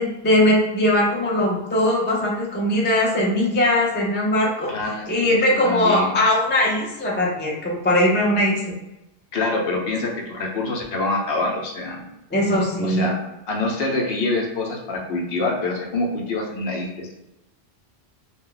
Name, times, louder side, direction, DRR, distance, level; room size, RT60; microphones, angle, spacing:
voice 1, 0.0-4.7 5.1-8.8 12.3-13.1, left 1 dB, 20° left, -3 dB, 0.3 m, -20 dB
voice 2, 4.7-6.1 9.3-12.0 12.8-13.1 13.5-17.2, left 2 dB, 65° left, 1 dB, 0.8 m, -26 dB
2.3 x 2.0 x 3.7 m, 0.96 s
omnidirectional pair, 1.1 m